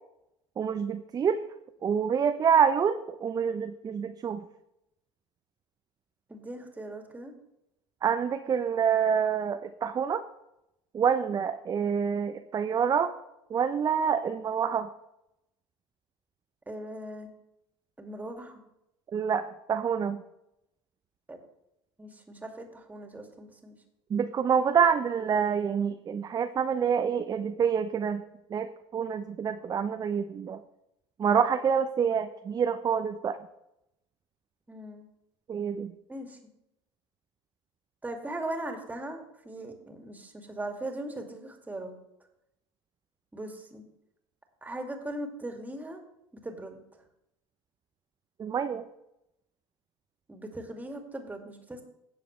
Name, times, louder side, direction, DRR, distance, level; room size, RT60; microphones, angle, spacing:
voice 1, 0.6-1.4 1.8-4.4 8.0-10.2 10.9-13.1 13.5-14.9 19.1-20.2 24.1-28.2 28.5-30.6 31.2-33.4 35.5-35.9 48.4-48.8, right 7 dB, 25° right, 8 dB, 0.6 m, -27 dB
voice 2, 6.3-7.3 16.7-17.3 18.0-18.6 21.3-21.4 22.0-23.8 34.7-35.1 36.1-36.4 38.0-42.0 43.3-43.8 44.6-46.0 46.3-46.8 50.3-51.8, right 1 dB, 10° right, 3 dB, 2.2 m, -39 dB
16.5 x 6.9 x 3.2 m, 0.84 s
figure-of-eight pair, 75°, 14 cm